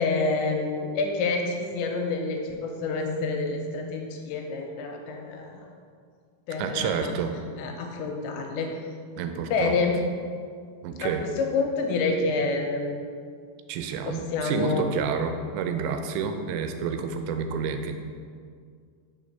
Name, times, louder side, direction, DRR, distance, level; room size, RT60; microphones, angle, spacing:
voice 1, 0.0-5.7 6.5-7.1 7.6-8.7 9.5-10.0 11.0-13.0 14.1-14.9, left 3 dB, 90° left, 2 dB, 3.0 m, -28 dB
voice 2, 6.6-7.3 9.2-9.8 10.8-11.2 13.7-17.9, right 6 dB, 85° right, 6 dB, 2.8 m, -29 dB
6.0 x 5.1 x 5.4 m, 2.1 s
omnidirectional pair, 5.2 m